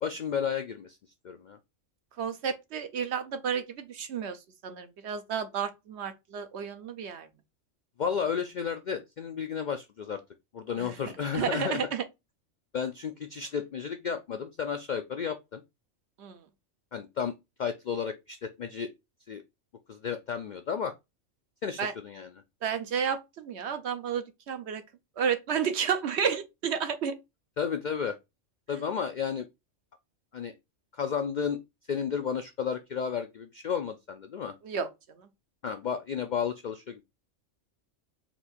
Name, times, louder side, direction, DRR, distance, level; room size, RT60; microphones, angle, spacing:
voice 1, 0.0-1.0 1.2-1.6 8.0-10.2 10.5-11.8 12.7-15.6 16.9-17.3 17.6-18.9 19.3-19.4 19.9-20.9 21.6-22.3 27.6-28.2 28.7-29.5 30.3-30.5 30.9-31.6 31.9-34.5 35.6-37.0, left 7 dB, 65° left, 0.4 m, -32 dB
voice 2, 2.2-7.3 10.8-11.0 11.3-12.0 16.2-16.4 21.8-21.9 22.6-24.8 25.2-27.2 34.6-34.9 35.2-35.3, right 7 dB, 65° right, 0.9 m, -31 dB
4.4 x 2.6 x 4.1 m
omnidirectional pair, 1.3 m